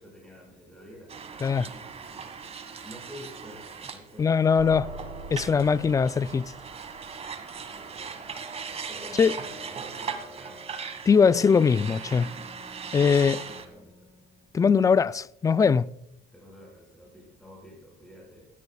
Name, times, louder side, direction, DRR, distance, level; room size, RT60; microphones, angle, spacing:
voice 1, 0.0-4.6 7.7-8.4 8.8-10.7 11.8-12.3 13.4-14.1 16.3-18.5, equal, 5° left, 5.6 m, -49 dB
sound 1, 1.1-13.7, right 6 dB, 40° right, 1.6 m, -39 dB
voice 2, 4.2-4.9 5.3-6.5 9.2-9.3 11.1-12.3 12.9-13.4 14.5-15.9, left 6 dB, 20° left, 0.4 m, -21 dB
sound 2, 4.6-11.0, right 2 dB, 55° right, 3.7 m, -44 dB
Bowed string instrument, 9.3-14.7, left 1 dB, 10° right, 4.5 m, -54 dB
18.0 x 13.0 x 2.3 m
cardioid pair, 110°, 17 cm